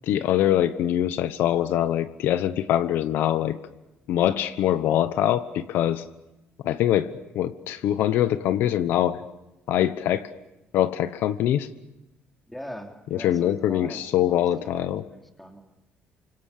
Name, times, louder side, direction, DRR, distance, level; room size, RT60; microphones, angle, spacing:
voice 1, 0.0-3.6 4.1-6.0 6.6-9.2 9.7-10.3 10.7-11.7 13.1-15.1, left 11 dB, 65° left, 12 dB, 1.0 m, -23 dB
voice 2, 12.5-14.8 15.1-15.6, equal, 5° left, 2 dB, 2.9 m, -41 dB
29.0 x 25.5 x 6.7 m, 0.97 s
cardioid pair, 180°, 4 cm